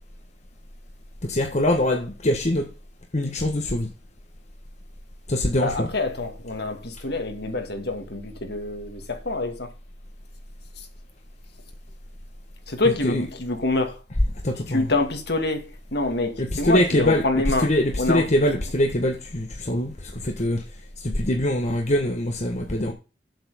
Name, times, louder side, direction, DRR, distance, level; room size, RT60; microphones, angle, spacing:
voice 1, 1.2-2.7 3.1-3.9 5.3-5.9 13.0-13.2 14.4-14.8 16.4-17.2 17.6-20.6 21.0-22.9, left 1 dB, 40° left, 1.4 m, -23 dB
voice 2, 5.6-9.7 10.8-10.9 12.7-14.0 14.7-18.3, left 2 dB, 65° left, 2.3 m, -26 dB
7.9 x 7.1 x 6.9 m
head